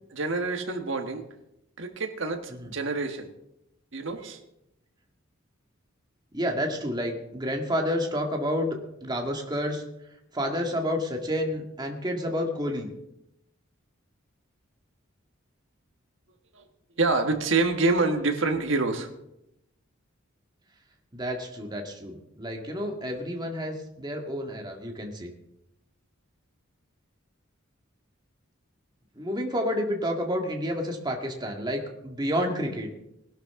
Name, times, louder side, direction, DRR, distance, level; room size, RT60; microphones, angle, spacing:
voice 1, 0.1-1.2 1.8-3.3 3.9-4.4 16.5-16.7 17.0-19.1, right 3 dB, 65° right, 6 dB, 1.5 m, -26 dB
voice 2, 6.3-9.8 10.3-12.9 21.1-25.3 29.2-32.9, equal, 20° right, 2 dB, 1.9 m, -30 dB
19.5 x 12.0 x 3.7 m, 0.85 s
head